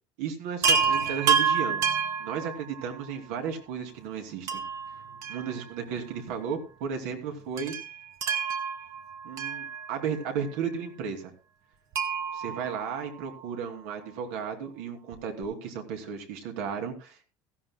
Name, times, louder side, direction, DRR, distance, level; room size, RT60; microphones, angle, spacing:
voice 1, 0.2-1.8 2.2-4.6 5.3-7.7 9.2-11.3 12.3-17.2, right 6 dB, 75° right, 4 dB, 2.7 m, -34 dB
Chime, 0.6-3.1 4.5-6.0 6.3-6.4 7.6-10.3 11.9-13.6 15.1-15.2 15.4-15.5, right 6 dB, 45° right, 1.3 m, -29 dB
16.0 x 14.0 x 2.2 m, 0.34 s
cardioid pair, 150°, 7 cm